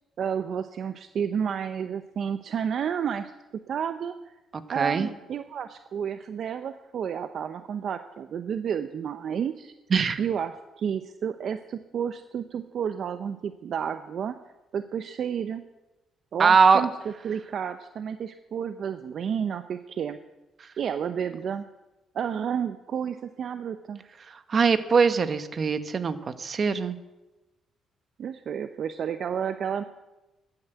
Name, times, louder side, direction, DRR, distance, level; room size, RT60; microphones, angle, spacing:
voice 1, 0.2-3.3 3.7-4.3 4.7-9.7 10.2-14.3 14.7-15.6 16.3-16.9 17.2-20.2 20.8-21.7 22.1-24.0 28.2-29.8, right 8 dB, 60° right, 9 dB, 0.6 m, -31 dB
voice 2, 4.7-5.1 9.9-10.2 16.4-16.8 24.5-26.9, right 5 dB, 45° right, 11 dB, 1.1 m, -21 dB
12.5 x 9.7 x 7.9 m, 1.1 s
cardioid pair, 90°, 0 cm